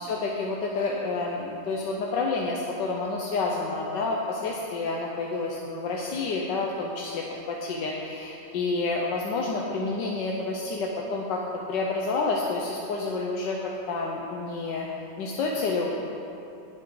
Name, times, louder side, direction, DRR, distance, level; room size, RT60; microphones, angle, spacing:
voice 1, 0.0-11.4 11.7-13.6 13.9-14.9 15.2-15.9, left 3 dB, 70° left, -2 dB, 1.5 m, -29 dB
19.5 x 7.2 x 3.9 m, 2.8 s
omnidirectional pair, 2.1 m